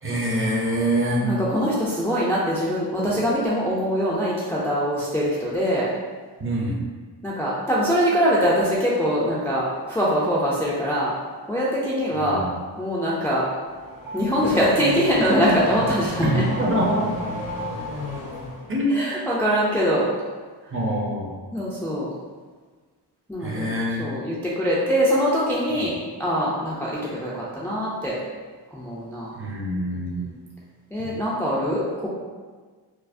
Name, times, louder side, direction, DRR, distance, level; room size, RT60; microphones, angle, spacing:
voice 1, 0.0-1.3 6.4-6.8 12.2-12.5 16.2-17.2 18.7-19.0 20.7-21.5 23.4-24.1 29.3-30.2, right 1 dB, 30° right, -3 dB, 0.7 m, -24 dB
voice 2, 1.2-5.9 7.2-11.1 11.5-12.4 12.8-13.5 14.1-16.4 18.9-20.0 21.5-22.1 23.3-28.2 28.7-29.4 29.9-30.3 30.9-32.1, equal, 5° left, -7 dB, 0.4 m, -23 dB
Car / Accelerating revving vroom, 13.7-18.7, left 2 dB, 80° left, 1.0 m, -33 dB
sound 1, 13.8-18.5, equal, 75° right, 0.5 m, -39 dB
4.6 x 2.0 x 2.5 m, 1.5 s
wide cardioid pair, 145°, 40 cm